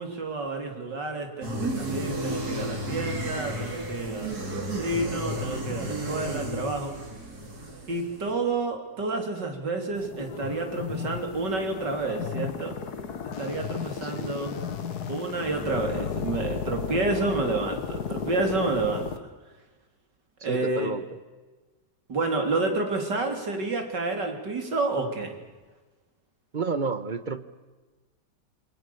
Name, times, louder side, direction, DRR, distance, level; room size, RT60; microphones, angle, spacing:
voice 1, 0.0-7.0 7.9-12.8 13.4-14.6 15.1-19.3 20.4-20.9 22.1-25.3, right 3 dB, 90° right, 4 dB, 4.0 m, -29 dB
sound 1, 1.4-8.3, right 1 dB, 65° right, 4.1 m, -33 dB
sound 2, 9.9-19.2, left 7 dB, 65° left, 1.9 m, -34 dB
voice 2, 14.0-14.4 20.5-21.1 26.5-27.4, right 4 dB, 30° right, 13 dB, 1.2 m, -31 dB
27.5 x 25.0 x 7.1 m, 1.3 s
omnidirectional pair, 1.8 m